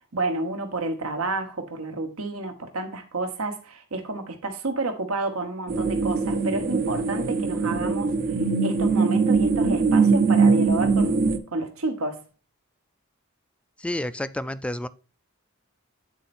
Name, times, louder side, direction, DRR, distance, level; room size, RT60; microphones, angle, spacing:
voice 1, 0.1-8.1 8.6-12.2, right 2 dB, 80° right, 1.2 m, -30 dB
sound 1, 5.7-11.4, right 4 dB, 40° right, 0.6 m, -22 dB
voice 2, 13.8-14.9, left 1 dB, 5° left, 0.3 m, -30 dB
8.1 x 4.4 x 4.2 m
head